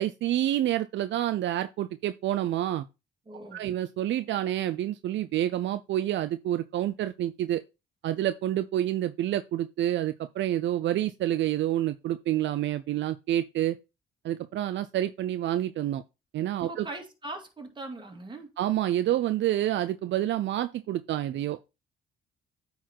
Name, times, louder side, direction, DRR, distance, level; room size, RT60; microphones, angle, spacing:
voice 1, 0.0-2.9 3.5-7.6 8.0-13.8 14.2-16.0 16.3-16.9 18.6-21.6, right 12 dB, 70° right, 0.5 m, -28 dB
voice 2, 3.3-3.7 16.6-18.5, right 2 dB, 25° right, 2.3 m, -40 dB
9.2 x 4.0 x 4.4 m
cardioid pair, 90°, 20 cm